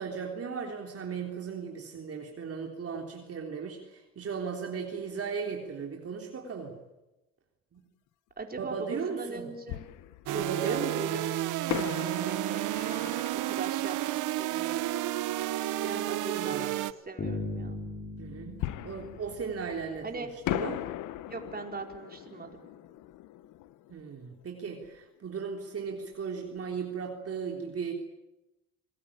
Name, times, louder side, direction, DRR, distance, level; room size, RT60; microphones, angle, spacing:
voice 1, 0.0-6.7 7.7-7.8 8.6-9.5 10.3-11.0 16.3-16.7 18.2-20.8 23.9-27.9, right 6 dB, 50° right, 1 dB, 3.6 m, -36 dB
Fireworks, 8.4-8.5 9.7-10.8 11.7-15.1 18.6-20.0 20.4-25.0 25.2-25.3 25.9-26.1, left 14 dB, 90° left, 1.0 m, -39 dB
voice 2, 8.4-9.9 10.3-11.3 11.7-14.9 15.8-17.8 20.0-20.3 21.3-22.6, right 3 dB, 30° right, 3 dB, 4.7 m, -40 dB
sound 1, 10.3-16.9, right 14 dB, 90° right, 1.0 m, -31 dB
sound 2, 17.2-20.2, left 2 dB, 40° left, 5.8 m, -39 dB
27.0 x 20.0 x 8.8 m, 0.99 s
cardioid pair, 90°, 30 cm